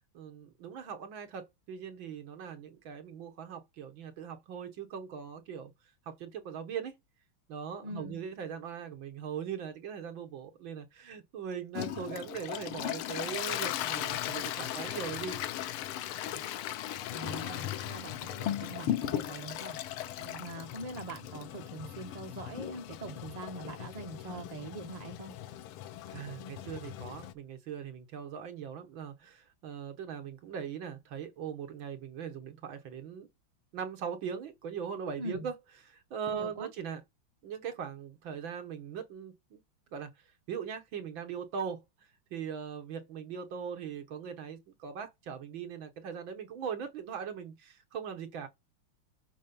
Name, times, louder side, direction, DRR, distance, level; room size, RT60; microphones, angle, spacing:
voice 1, 0.1-5.7 6.1-6.9 7.5-15.4 16.3-16.5 20.2-20.5 26.1-33.3 33.7-35.6 35.8-37.0 37.4-39.6 39.9-48.5, right 7 dB, 70° right, 1.9 m, -40 dB
voice 2, 7.8-8.2 17.1-19.8 20.4-25.3 35.2-35.5 36.3-36.7, right 2 dB, 20° right, 1.3 m, -43 dB
Toilet flush, 11.7-27.3, left 12 dB, 90° left, 1.6 m, -37 dB
7.3 x 4.2 x 5.3 m
omnidirectional pair, 2.3 m